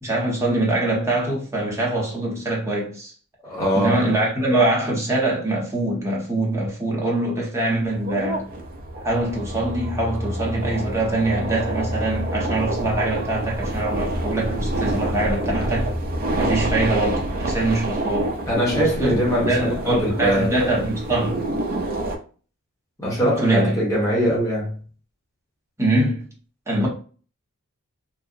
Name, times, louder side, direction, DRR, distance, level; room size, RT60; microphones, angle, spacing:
voice 1, 0.0-3.1 3.7-8.5 9.0-15.9 16.4-18.4 18.7-19.2 19.5-21.4 23.2-23.8 25.8-26.2 26.7-26.9, right 2 dB, 15° right, 0.8 m, -23 dB
voice 2, 3.4-4.0 18.5-20.5 23.0-24.8, equal, 15° left, 1.0 m, -22 dB
sound 1, 7.8-22.2, right 1 dB, 40° right, 0.4 m, -27 dB
2.6 x 2.0 x 2.4 m
head